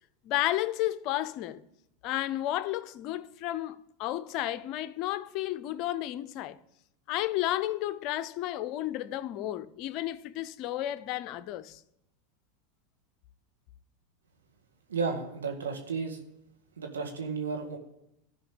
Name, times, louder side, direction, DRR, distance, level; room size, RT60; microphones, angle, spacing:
voice 1, 0.2-1.6 2.0-6.6 7.1-11.8, left 14 dB, 50° left, 0.6 m, -32 dB
voice 2, 14.9-16.2 16.8-17.8, right 4 dB, 90° right, 1.8 m, -33 dB
12.5 x 5.2 x 8.5 m
hypercardioid pair, 95°, 0 cm